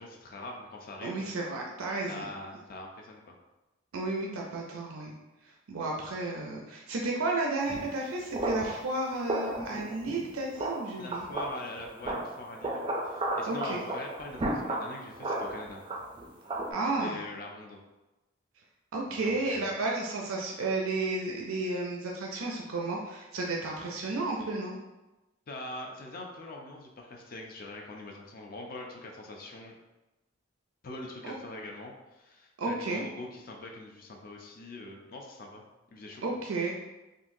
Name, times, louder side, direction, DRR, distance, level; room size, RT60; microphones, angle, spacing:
voice 1, 0.0-1.3 2.1-3.3 11.0-15.8 16.8-17.8 19.1-19.7 25.5-29.7 30.8-35.6 35.9-36.2, left 2 dB, 45° left, 1 dB, 0.4 m, -43 dB
voice 2, 1.0-2.3 3.9-5.1 5.4-11.3 13.5-13.8 16.7-17.2 18.9-24.8 31.2-31.4 32.6-33.0 36.2-36.7, right 2 dB, 85° right, -1 dB, 0.5 m, -32 dB
sound 1, 7.7-7.9 8.3-8.8 9.3-10.2 10.5-11.5 11.8-16.7, right 1 dB, 25° right, 0.4 m, -34 dB
3.8 x 2.6 x 2.6 m, 1.1 s
head